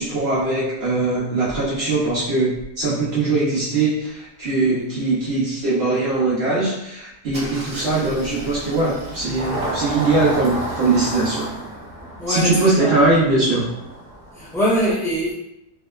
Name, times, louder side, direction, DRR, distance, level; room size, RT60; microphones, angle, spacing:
voice 1, 0.0-11.5 12.3-13.6, right 2 dB, 75° right, -7 dB, 0.5 m, -21 dB
Engine starting, 7.3-14.6, right 1 dB, 45° right, 0.8 m, -31 dB
voice 2, 10.0-10.3 12.0-13.0 14.3-15.3, equal, 5° left, -11 dB, 0.4 m, -23 dB
2.8 x 2.0 x 2.2 m, 0.86 s
omnidirectional pair, 1.7 m